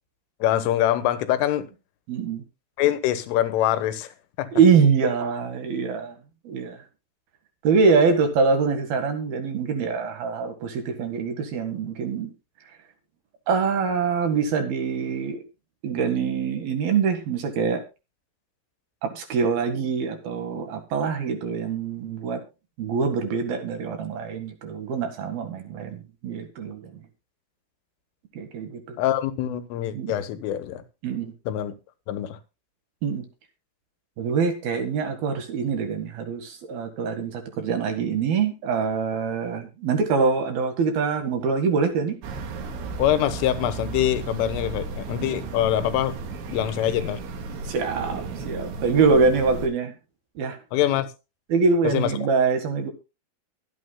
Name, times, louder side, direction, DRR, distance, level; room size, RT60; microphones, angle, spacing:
voice 1, 0.4-1.7 2.8-4.1 4.4-4.5 29.0-30.8 31.5-31.7 32.1-32.4 43.0-46.2 46.5-47.2 50.7-51.1 51.8-52.1, left 12 dB, 90° left, 3.7 m, -24 dB
voice 2, 2.1-2.4 4.5-6.2 6.4-6.8 7.6-12.3 13.5-15.4 15.8-17.8 19.0-22.4 22.8-26.9 28.3-29.0 29.9-30.1 31.0-31.3 33.0-33.3 34.2-42.2 47.6-49.9 50.4-50.6 51.5-52.9, right 5 dB, 60° right, 3.1 m, -24 dB
sound 1, 42.2-49.7, right 3 dB, 75° right, 4.4 m, -34 dB
23.0 x 8.6 x 2.3 m
omnidirectional pair, 5.5 m